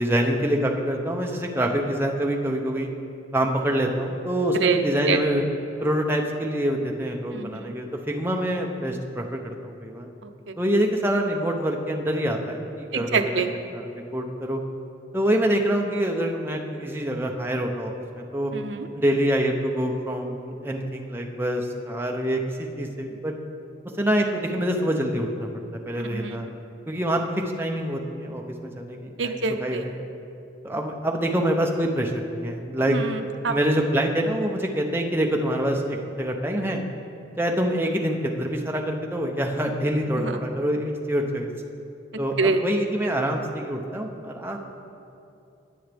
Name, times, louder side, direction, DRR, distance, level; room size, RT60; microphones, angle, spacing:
voice 1, 0.0-2.9 3.3-5.4 5.8-10.1 10.6-13.4 13.7-14.6 15.1-18.5 18.9-23.3 24.0-25.5 25.9-26.5 26.9-29.9 30.6-33.0 33.5-36.8 37.4-41.5 42.2-44.6, equal, 10° right, 1 dB, 0.7 m, -26 dB
voice 2, 4.5-5.2 7.3-7.8 10.2-10.5 12.9-13.5 18.5-18.9 26.0-26.5 29.2-29.8 32.9-33.5 40.2-40.4 42.4-42.6, right 4 dB, 70° right, 6 dB, 0.7 m, -26 dB
19.5 x 7.1 x 3.4 m, 2.7 s
head